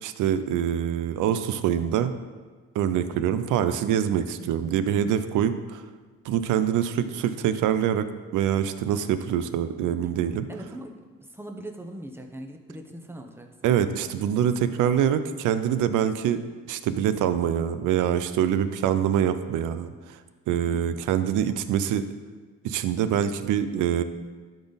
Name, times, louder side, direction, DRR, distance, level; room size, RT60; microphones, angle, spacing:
voice 1, 0.0-2.1 2.7-5.8 6.2-8.1 8.3-10.5 13.6-16.4 16.7-20.2 20.5-22.1 22.6-24.0, right 9 dB, 85° right, 11 dB, 0.6 m, -25 dB
voice 2, 10.5-13.7 20.5-20.8, right 1 dB, 10° right, 3 dB, 0.9 m, -41 dB
12.0 x 4.0 x 4.0 m, 1.4 s
cardioid pair, 90°, 30 cm